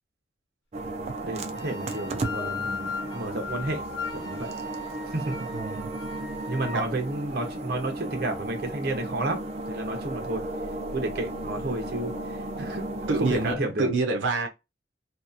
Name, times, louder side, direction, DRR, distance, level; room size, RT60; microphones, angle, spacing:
sound 1, 0.7-13.6, right 1 dB, 35° right, 0.4 m, -35 dB
voice 1, 1.2-3.8 4.1-4.5 5.1-5.3 6.5-9.4 9.7-10.4 10.9-12.8 13.2-13.9, right 2 dB, 55° right, 0.8 m, -31 dB
sound 2, 1.5-6.8, left 4 dB, 80° left, 0.9 m, -37 dB
voice 2, 5.5-5.9 6.7-6.9 12.6-12.7 13.1-14.5, right 3 dB, 85° right, 0.5 m, -27 dB
2.8 x 2.4 x 2.4 m
head